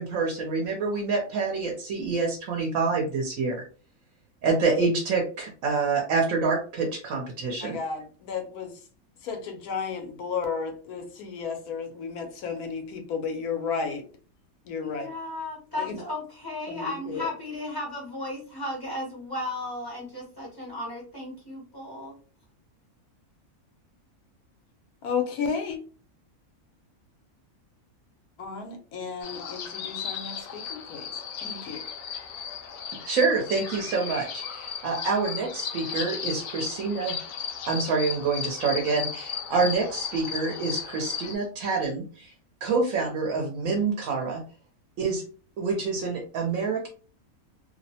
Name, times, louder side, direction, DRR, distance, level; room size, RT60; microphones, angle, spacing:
voice 1, 0.0-3.6 4.4-7.8 33.1-37.2 37.7-42.3 42.6-44.4 45.0-45.2 45.6-46.9, right 4 dB, 70° right, 1.0 m, -27 dB
voice 2, 7.6-8.8 9.2-14.1 14.6-15.1 15.8-16.0 16.7-17.3 25.0-25.8 28.4-31.1 31.4-31.8, left 5 dB, 85° left, 1.2 m, -33 dB
voice 3, 14.8-22.1, left 1 dB, 25° left, 0.5 m, -35 dB
sound 1, 29.2-41.3, left 7 dB, 65° left, 0.8 m, -35 dB
2.9 x 2.0 x 2.7 m
omnidirectional pair, 1.5 m